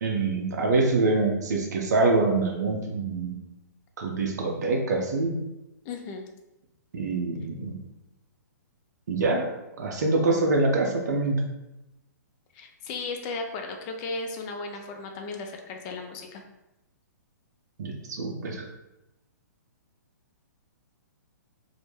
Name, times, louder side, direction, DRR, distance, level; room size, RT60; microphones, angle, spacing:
voice 1, 0.0-3.4 4.0-5.4 6.9-7.8 9.1-9.5 9.8-11.5 17.8-18.6, right 3 dB, 65° right, 1 dB, 0.5 m, -25 dB
voice 2, 5.8-6.3 12.5-16.4, left 3 dB, 30° left, 3 dB, 0.4 m, -35 dB
2.1 x 2.0 x 3.1 m, 0.93 s
hypercardioid pair, 130°, 10 cm